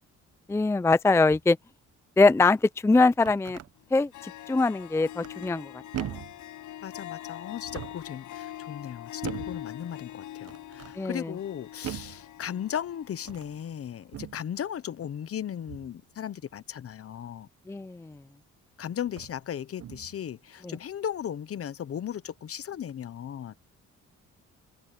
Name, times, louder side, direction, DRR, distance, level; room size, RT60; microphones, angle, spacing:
voice 1, 0.5-1.6 2.2-3.6 3.9-5.7 11.0-11.3 17.7-18.2 20.6-20.7, left 3 dB, 10° left, 0.5 m, -23 dB
sound 1, 3.0-3.7 5.2-5.6 5.9-6.4 7.5-8.1 9.2-9.6 10.4-11.0 11.8-12.2 13.2-13.6 14.1-14.4 15.7-16.0 18.1-18.2 19.1-19.4 19.8-20.2, right 11 dB, 55° right, 1.1 m, -39 dB
Harp, 3.8-3.9 4.1-13.6, left 13 dB, 80° left, 6.1 m, -43 dB
voice 2, 6.8-17.5 18.8-23.5, left 9 dB, 50° left, 1.0 m, -36 dB
cardioid pair, 90°, 30 cm